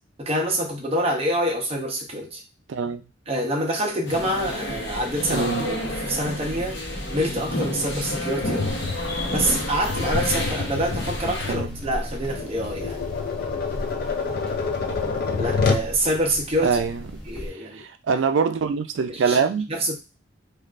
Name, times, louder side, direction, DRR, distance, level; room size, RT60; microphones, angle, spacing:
voice 1, 0.2-2.4 3.3-6.8 7.1-8.7 9.3-13.0 15.3-16.8 17.3-17.8 19.1-19.4 19.7-20.0, right 1 dB, 35° right, 0.7 m, -26 dB
voice 2, 2.7-3.0 5.3-5.7 11.5-11.7 16.6-17.0 17.8-19.7, right 5 dB, 80° right, 0.4 m, -24 dB
sound 1, 4.1-11.5, left 1 dB, 70° left, 0.9 m, -30 dB
Tap, 8.4-15.9, left 5 dB, 50° left, 0.4 m, -28 dB
sound 2, 8.7-17.5, equal, 5° left, 1.0 m, -36 dB
3.2 x 2.4 x 2.4 m
head